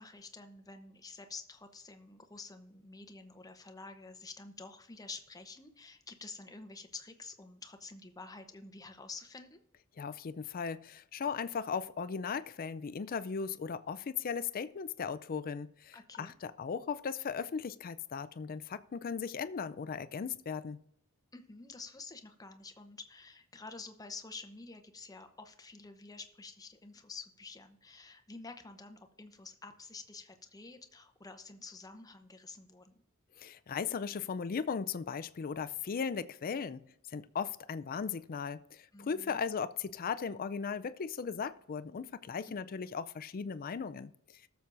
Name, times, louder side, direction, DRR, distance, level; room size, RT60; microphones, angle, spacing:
voice 1, 0.0-9.6 15.9-16.3 21.3-32.9 38.9-39.4 42.5-42.6, left 3 dB, 15° left, 0.8 m, -49 dB
voice 2, 10.0-20.8 33.4-36.8 37.1-44.1, left 6 dB, 40° left, 0.4 m, -37 dB
19.0 x 7.0 x 2.6 m
head